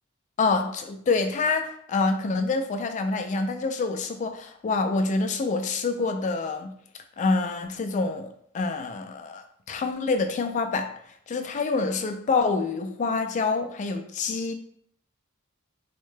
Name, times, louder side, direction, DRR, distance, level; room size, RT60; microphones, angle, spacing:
voice 1, 0.4-6.7 7.2-10.9 11.3-14.5, left 3 dB, 35° left, 6 dB, 0.3 m, -26 dB
3.6 x 2.1 x 3.2 m, 0.66 s
head